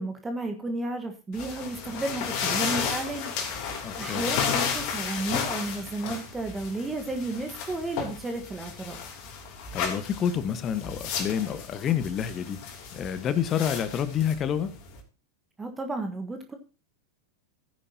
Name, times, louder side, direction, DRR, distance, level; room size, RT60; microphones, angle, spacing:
voice 1, 0.0-9.0 15.6-16.6, right 2 dB, 15° right, 1.4 m, -33 dB
sound 1, 1.3-15.0, left 6 dB, 45° left, 3.1 m, -33 dB
voice 2, 3.8-4.4 9.7-12.6 12.9-14.7, left 8 dB, 30° left, 1.3 m, -28 dB
16.0 x 10.0 x 2.9 m
figure-of-eight pair, 90°, 0 cm